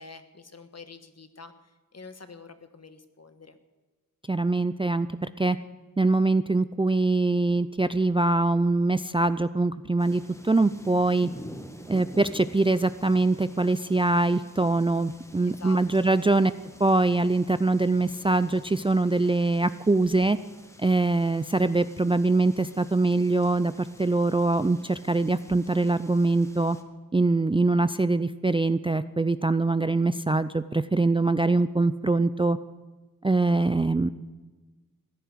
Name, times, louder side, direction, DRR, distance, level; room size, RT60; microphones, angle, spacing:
voice 1, 0.0-3.6 15.4-16.1, left 4 dB, 50° left, 9 dB, 1.4 m, -47 dB
voice 2, 4.3-5.6 6.0-11.3 11.9-16.5 16.8-20.4 20.8-26.8 27.1-32.6 33.2-34.1, right 2 dB, 15° right, 13 dB, 0.4 m, -23 dB
sound 1, 10.0-26.8, equal, 10° left, 1.6 m, -49 dB
16.0 x 10.0 x 8.4 m, 1.2 s
wide cardioid pair, 70°, 34 cm